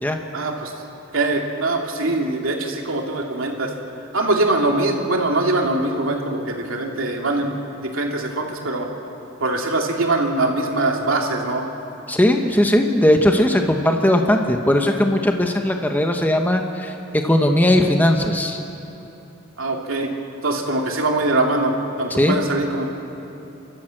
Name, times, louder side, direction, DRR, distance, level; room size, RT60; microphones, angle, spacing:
voice 1, 0.3-0.7 1.1-3.7 4.1-7.5 7.8-8.9 9.4-11.7 19.6-20.1 20.4-22.9, right 2 dB, 80° right, 1 dB, 2.7 m, -22 dB
voice 2, 12.1-18.6 22.1-22.4, left 1 dB, 10° left, 3 dB, 1.1 m, -18 dB
29.0 x 13.5 x 7.8 m, 3.0 s
head